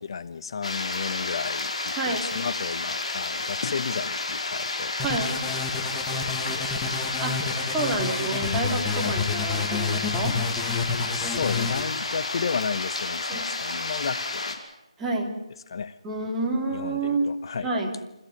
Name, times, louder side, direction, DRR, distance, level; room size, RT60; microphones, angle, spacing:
voice 1, 0.1-5.0 5.7-7.0 9.0-9.2 11.1-14.5 15.7-16.0 16.7-17.7, left 6 dB, 45° left, 14 dB, 0.9 m, -33 dB
sound 1, 0.6-14.6, left 3 dB, 70° left, 5.2 m, -31 dB
voice 2, 1.9-2.2 5.0-5.3 7.2-7.4 7.7-10.4 13.3-13.5 15.0-15.3 16.0-17.3 17.6-17.9, right 2 dB, 10° right, -2 dB, 3.4 m, -28 dB
sound 2, 5.0-11.9, left 5 dB, 10° left, 1.6 m, -30 dB
28.5 x 15.0 x 9.8 m, 0.93 s
figure-of-eight pair, 160°, 4 cm